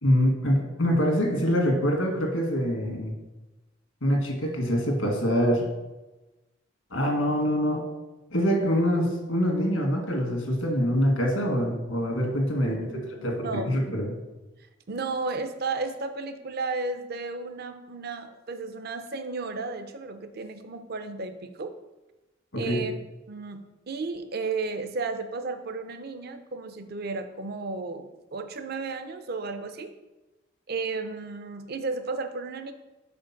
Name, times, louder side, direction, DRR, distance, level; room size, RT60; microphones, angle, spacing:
voice 1, 0.0-3.1 4.0-5.6 6.9-7.8 8.3-12.7 13.2-14.1 22.5-22.8, equal, 85° left, 1 dB, 1.6 m, -24 dB
voice 2, 12.6-13.8 14.9-21.7 22.5-22.9 23.3-29.9 30.7-32.7, right 3 dB, 50° right, 8 dB, 0.5 m, -33 dB
5.1 x 4.4 x 5.8 m, 1.1 s
head